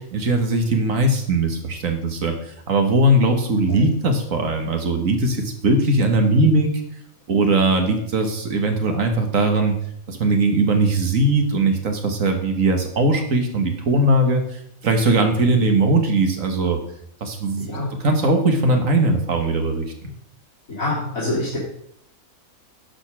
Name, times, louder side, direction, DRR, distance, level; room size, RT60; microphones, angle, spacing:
voice 1, 0.0-2.4 2.7-6.7 7.3-9.8 10.1-14.4 14.8-16.8 17.2-17.7 18.0-20.1, right 2 dB, 70° right, 5 dB, 1.9 m, -19 dB
voice 2, 20.7-21.6, left 2 dB, 80° left, -8 dB, 3.2 m, -25 dB
11.5 x 5.4 x 6.1 m, 0.70 s
omnidirectional pair, 1.4 m